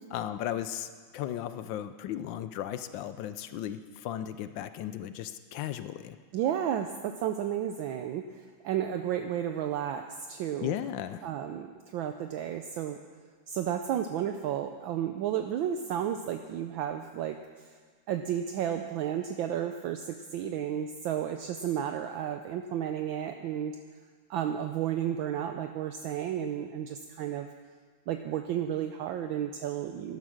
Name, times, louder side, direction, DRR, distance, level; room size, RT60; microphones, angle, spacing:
voice 1, 0.1-6.2 10.6-11.3, left 11 dB, 75° left, 11 dB, 1.1 m, -36 dB
voice 2, 6.3-10.8 11.2-13.0 13.5-17.4 18.1-23.8 24.3-27.5 28.1-30.2, right 10 dB, 75° right, 7 dB, 1.3 m, -32 dB
11.5 x 11.0 x 6.4 m, 1.5 s
omnidirectional pair, 2.4 m